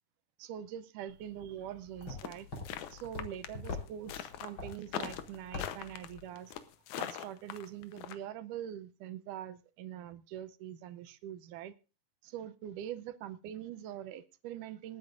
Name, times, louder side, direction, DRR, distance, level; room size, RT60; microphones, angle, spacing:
voice 1, 0.4-2.5 2.9-6.6 7.0-11.7 12.2-15.0, right 10 dB, 80° right, 13 dB, 2.2 m, -43 dB
sound 1, 1.1-6.3, left 3 dB, 35° left, 4.6 m, -45 dB
sound 2, 2.2-8.2, left 11 dB, 70° left, 2.2 m, -41 dB
26.5 x 9.6 x 2.5 m, 0.32 s
omnidirectional pair, 3.8 m